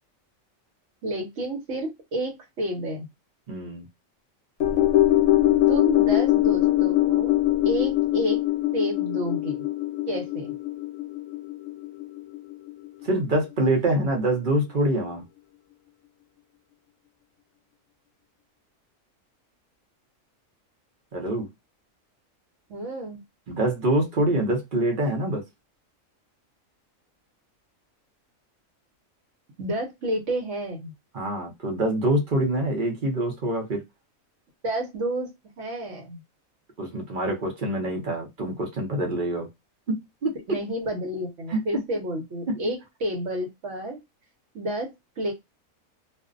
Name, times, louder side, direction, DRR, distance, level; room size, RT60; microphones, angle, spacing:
voice 1, 1.0-3.1 5.7-7.3 7.6-8.4 8.7-9.7 10.1-10.5 22.7-23.2 29.6-30.9 34.6-36.2 40.5-44.0 44.5-45.3, right 1 dB, 65° right, 1.0 m, -30 dB
voice 2, 3.5-3.9 13.0-15.2 21.1-21.5 23.5-25.4 31.1-33.8 36.8-39.5 39.9-40.6 41.5-41.6 42.5-42.6, right 1 dB, 50° right, 0.7 m, -25 dB
sound 1, 4.6-13.0 13.4-13.5, left 15 dB, 70° left, 0.9 m, -22 dB
2.5 x 2.1 x 2.4 m
omnidirectional pair, 1.4 m